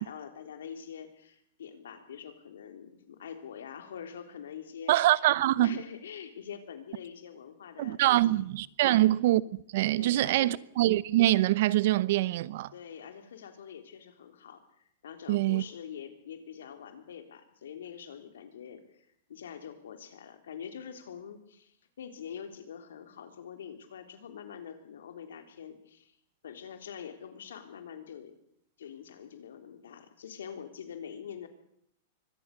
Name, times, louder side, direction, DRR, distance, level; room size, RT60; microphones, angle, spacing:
voice 1, 0.0-5.0 5.2-8.4 8.8-9.1 10.0-10.6 12.7-26.2 26.4-28.3 28.8-31.5, left 8 dB, 85° left, 3.7 m, -45 dB
voice 2, 4.9-5.7 7.8-9.4 9.7-12.7 15.3-15.6, right 15 dB, 65° right, 0.9 m, -24 dB
24.0 x 18.0 x 6.7 m
hypercardioid pair, 130°, 0 cm